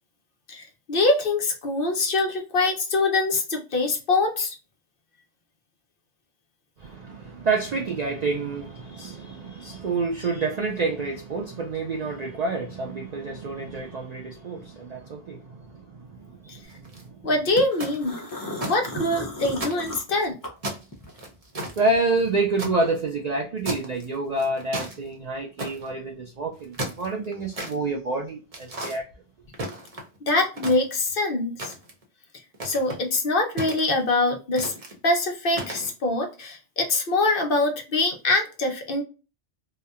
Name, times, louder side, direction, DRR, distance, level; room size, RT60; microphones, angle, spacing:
voice 1, 0.5-4.6 17.2-18.2 18.7-20.4 30.2-31.7 32.6-34.7 35.0-39.0, left 2 dB, 55° left, 0.8 m, -24 dB
voice 2, 6.8-17.3 19.0-19.1 21.8-29.0, right 3 dB, 60° right, 0.4 m, -28 dB
sound 1, 16.6-17.0 17.6-18.8 19.1-19.2 19.6-20.3 20.6-22.7 23.6-24.0 24.4-25.0 25.6-25.9 26.5-27.7 28.5-29.0 29.5-30.2 30.5-31.1 31.6-32.0 32.5-33.0 33.6-34.1 34.6-34.9 35.5-35.9, right 1 dB, 35° right, 0.8 m, -34 dB
sound 2, 17.7-21.3 21.6-23.1, left 1 dB, 30° left, 0.4 m, -37 dB
2.8 x 2.1 x 2.3 m
omnidirectional pair, 1.2 m